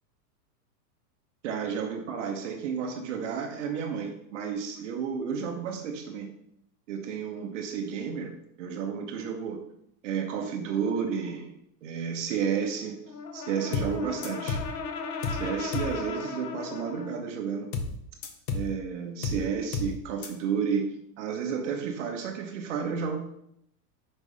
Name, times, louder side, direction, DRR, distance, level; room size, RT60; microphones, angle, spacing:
voice 1, 1.4-6.3 6.9-9.6 10.0-11.5 11.8-13.0 13.3-14.6 15.3-17.7 18.5-20.9 21.2-23.2, right 6 dB, 50° right, 4 dB, 1.1 m, -32 dB
Brass instrument, 13.1-17.2, left 5 dB, 80° left, 1.1 m, -37 dB
sound 1, 13.7-14.0 14.2-14.7 15.2-15.5 15.7-16.0 17.7-18.0 18.2-18.7 19.2-19.5 19.7-20.0 20.2-20.3, left 4 dB, 35° left, 0.7 m, -31 dB
5.4 x 4.8 x 5.4 m, 0.74 s
supercardioid pair, 165°, 49 cm